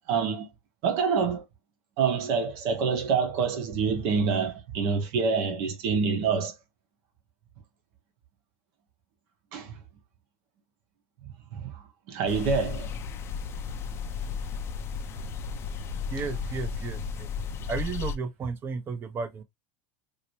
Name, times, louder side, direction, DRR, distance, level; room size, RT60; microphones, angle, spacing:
voice 1, 0.1-0.5 0.8-1.4 2.0-6.5 9.5-9.7 11.5-12.9, right 5 dB, 65° right, 1.1 m, -27 dB
sound 1, 12.3-18.2, left 6 dB, 40° left, 0.6 m, -34 dB
voice 2, 16.1-17.3 17.7-19.4, right 5 dB, 35° right, 0.8 m, -33 dB
2.9 x 2.8 x 2.9 m
supercardioid pair, 105°, 7 cm